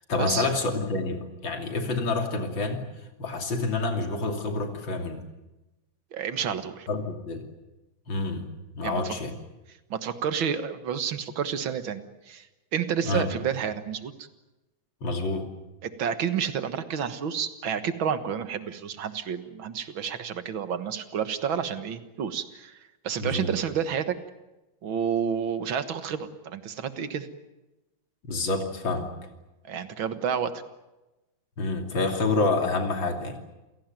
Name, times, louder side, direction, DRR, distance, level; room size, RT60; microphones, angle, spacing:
voice 1, 0.1-2.8 3.2-5.2 6.9-7.4 8.1-8.5 8.8-9.3 13.0-13.3 15.0-15.5 23.2-23.5 28.3-29.1 31.6-33.4, left 3 dB, 75° left, 5 dB, 3.6 m, -28 dB
voice 2, 6.1-6.9 8.8-9.2 9.9-12.4 12.7-14.3 15.8-22.8 23.0-24.2 24.8-27.3 29.6-30.5, right 7 dB, 85° right, 11 dB, 2.3 m, -30 dB
28.0 x 17.5 x 9.2 m, 1.0 s
omnidirectional pair, 2.1 m